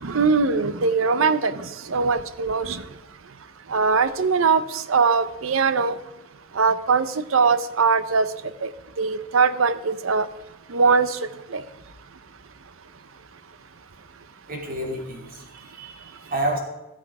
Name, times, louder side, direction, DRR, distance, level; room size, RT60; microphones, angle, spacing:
voice 1, 0.0-2.8 3.7-6.0 6.5-8.3 8.6-8.7 9.0-10.3 10.7-11.2 11.5-11.6, right 5 dB, 80° right, 14 dB, 0.7 m, -21 dB
voice 2, 14.5-16.6, right 1 dB, 45° right, 1 dB, 2.7 m, -30 dB
17.0 x 7.5 x 4.9 m, 0.99 s
head